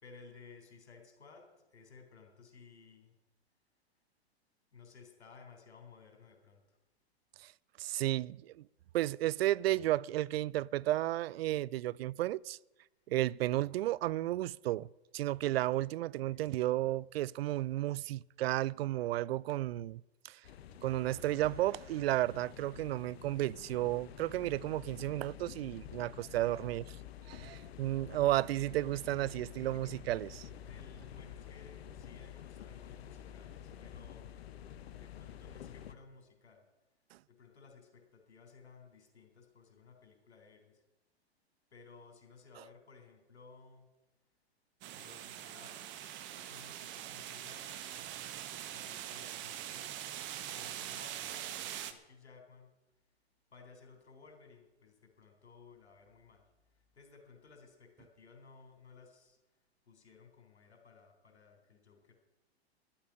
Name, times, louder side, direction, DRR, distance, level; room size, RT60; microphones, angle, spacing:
voice 1, 0.0-3.1 4.7-6.8 16.3-16.5 26.3-26.7 30.7-34.4 35.0-36.6 37.3-40.8 41.7-43.9 44.9-47.9 48.7-50.0 50.5-52.7 53.5-59.4 59.9-62.1, left 5 dB, 90° left, 4.0 m, -58 dB
voice 2, 7.8-8.6 8.9-12.6 13.1-14.9 15.1-20.4 20.8-26.8 27.3-30.5 37.1-37.2, right 15 dB, 65° right, 0.4 m, -33 dB
sound 1, 20.4-35.9, left 9 dB, 70° left, 1.2 m, -49 dB
sound 2, 44.8-51.9, right 12 dB, 35° right, 1.2 m, -43 dB
11.5 x 8.6 x 9.8 m
hypercardioid pair, 115°, 32 cm